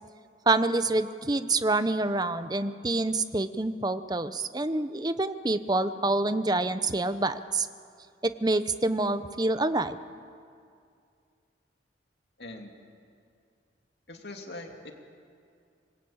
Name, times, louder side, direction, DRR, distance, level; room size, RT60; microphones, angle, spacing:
voice 1, 0.5-7.7 8.2-10.0, right 2 dB, 20° right, 11 dB, 0.7 m, -27 dB
voice 2, 12.4-12.7 14.1-14.9, left 2 dB, 60° left, 3 dB, 2.6 m, -42 dB
26.0 x 20.5 x 8.7 m, 2.3 s
head